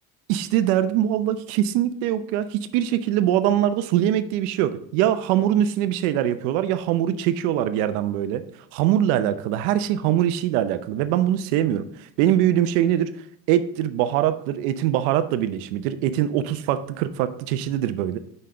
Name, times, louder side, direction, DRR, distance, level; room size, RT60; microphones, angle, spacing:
voice 1, 0.3-2.5 2.7-8.4 8.7-13.1 13.5-18.2, right 11 dB, 85° right, 11 dB, 0.8 m, -22 dB
7.8 x 5.4 x 3.7 m, 0.68 s
cardioid pair, 170°, 42 cm